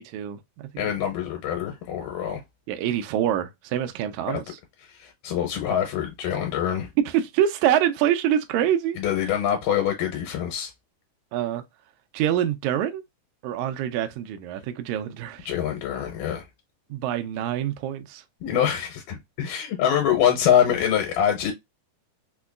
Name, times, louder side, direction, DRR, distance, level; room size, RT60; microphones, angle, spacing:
voice 1, 0.0-0.9 2.7-4.4 7.1-9.0 11.3-11.6 12.1-13.0 13.4-15.5 16.9-18.2, right 10 dB, 80° right, 1.8 m, -25 dB
voice 2, 0.8-2.4 4.3-4.4 4.8-6.9 9.0-10.7 15.5-16.5 18.4-21.5, left 9 dB, 85° left, 2.4 m, -25 dB
5.2 x 2.2 x 2.3 m
omnidirectional pair, 3.8 m